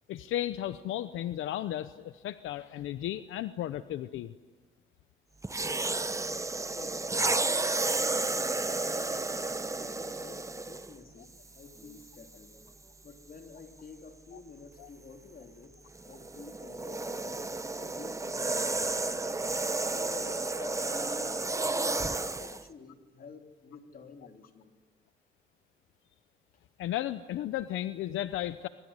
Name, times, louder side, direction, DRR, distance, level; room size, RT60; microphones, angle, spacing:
voice 1, 0.1-4.3 26.8-28.7, left 12 dB, 85° left, 12 dB, 0.8 m, -34 dB
sound 1, 5.4-11.0 11.8-12.0 15.9-22.6, right 3 dB, 15° right, 1.0 m, -32 dB
voice 2, 6.7-9.2 9.8-12.5 13.0-15.8 16.0-19.2 19.9-21.5 22.0-24.7, left 4 dB, 45° left, 4 dB, 3.5 m, -50 dB
25.0 x 24.0 x 9.7 m, 1.4 s
cardioid pair, 90°, 20 cm